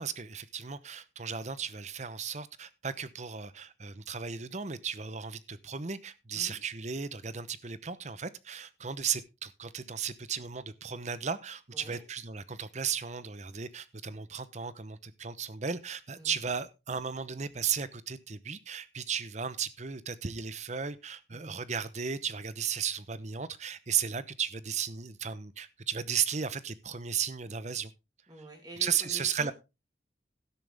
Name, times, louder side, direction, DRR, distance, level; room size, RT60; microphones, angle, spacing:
voice 1, 0.0-27.9 28.8-29.5, right 7 dB, 40° right, 0.8 m, -35 dB
voice 2, 11.7-12.0 16.2-16.4 21.3-21.6 28.3-29.5, right 1 dB, 25° right, 2.6 m, -48 dB
12.5 x 10.0 x 3.5 m
head